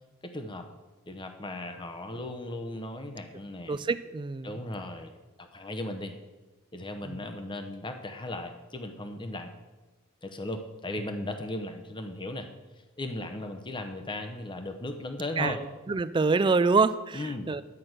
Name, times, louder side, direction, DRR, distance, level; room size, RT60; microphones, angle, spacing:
voice 1, 0.2-0.7 1.1-3.8 4.4-5.1 5.4-6.2 6.7-9.5 10.2-12.5 13.0-15.6 17.1-17.5, left 1 dB, 20° left, 7 dB, 0.8 m, -37 dB
voice 2, 3.7-4.6 7.0-7.2 15.4-15.6 15.9-17.6, right 4 dB, 20° right, 14 dB, 0.3 m, -26 dB
11.0 x 5.9 x 7.9 m, 1.2 s
head